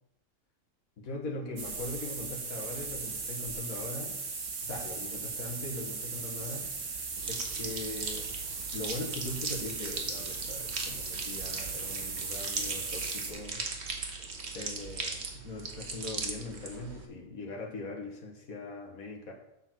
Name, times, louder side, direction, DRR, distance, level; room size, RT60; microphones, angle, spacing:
voice 1, 1.0-4.2 4.6-6.7 7.3-8.3 8.7-13.6 14.5-19.3, left 2 dB, 75° left, -1 dB, 1.9 m, -40 dB
sound 1, 1.6-13.3, right 4 dB, 90° right, 1.9 m, -38 dB
sound 2, 7.2-17.1, right 4 dB, 50° right, 1.5 m, -38 dB
8.0 x 6.9 x 5.9 m, 0.84 s
omnidirectional pair, 1.5 m